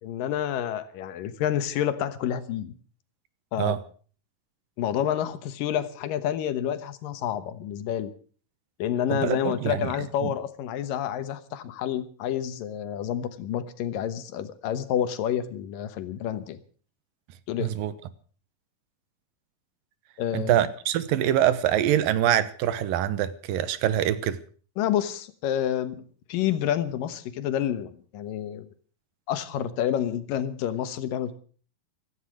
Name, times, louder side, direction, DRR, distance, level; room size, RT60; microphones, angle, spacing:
voice 1, 0.0-2.7 3.5-3.8 4.8-8.1 8.8-16.6 17.5-17.7 20.2-20.6 24.8-26.0 26.3-28.7 29.3-31.4, left 10 dB, 80° left, 2.8 m, -29 dB
voice 2, 9.1-9.9 10.2-10.3 17.6-17.9 20.3-24.4, right 11 dB, 85° right, 2.7 m, -24 dB
16.0 x 14.0 x 6.3 m
omnidirectional pair, 3.9 m